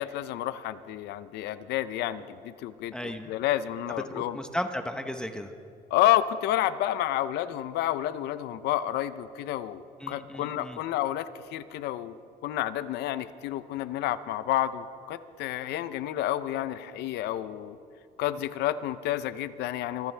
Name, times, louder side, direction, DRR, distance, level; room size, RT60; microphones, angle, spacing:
voice 1, 0.0-4.4 5.9-12.2 12.4-17.8 18.2-20.1, left 13 dB, 80° left, 13 dB, 0.7 m, -30 dB
voice 2, 2.9-3.3 4.1-5.5 10.0-10.8, equal, 5° left, 7 dB, 0.9 m, -35 dB
25.0 x 15.0 x 3.4 m, 2.5 s
cardioid pair, 110°, 17 cm